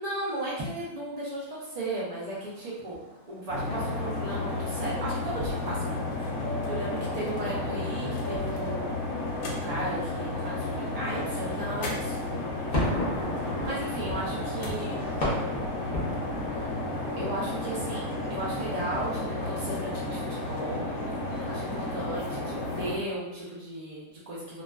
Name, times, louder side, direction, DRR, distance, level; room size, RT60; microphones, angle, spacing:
voice 1, 0.0-3.0 3.3-6.0 6.7-9.1 9.5-12.1 13.6-15.1 17.2-20.8 21.5-24.6, right 1 dB, 90° right, -7 dB, 0.3 m, -35 dB
sound 1, 2.2-19.4, left 1 dB, 50° left, 0.4 m, -38 dB
sound 2, 3.5-23.0, left 2 dB, 85° left, 1.0 m, -32 dB
2.4 x 2.3 x 2.3 m, 0.95 s
omnidirectional pair, 1.5 m